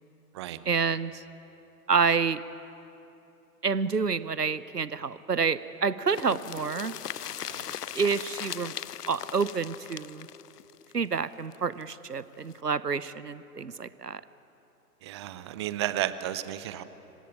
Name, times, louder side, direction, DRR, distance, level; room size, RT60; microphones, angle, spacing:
voice 1, 0.7-1.2 1.9-2.4 3.6-6.9 7.9-8.8 9.1-10.3 10.9-14.2, right 5 dB, 90° right, 17 dB, 0.8 m, -28 dB
sound 1, 6.1-11.8 12.1-12.2 12.5-12.6, left 9 dB, 75° left, 0.6 m, -39 dB
voice 2, 15.0-16.8, right 13 dB, 20° right, 14 dB, 0.5 m, -33 dB
25.5 x 16.5 x 9.8 m, 3.0 s
figure-of-eight pair, 115°, 47 cm